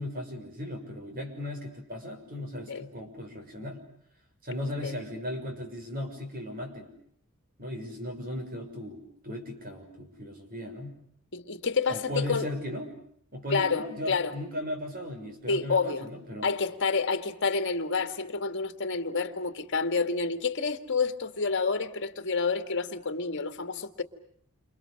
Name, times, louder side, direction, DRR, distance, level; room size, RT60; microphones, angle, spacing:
voice 1, 0.0-3.8 4.4-6.9 7.6-11.0 11.9-12.9 13.3-16.5, left 1 dB, 40° right, 6.3 m, -37 dB
voice 2, 11.3-12.5 13.5-14.3 15.5-16.1 16.4-24.0, left 4 dB, 55° left, 2.1 m, -29 dB
29.5 x 28.5 x 6.6 m
head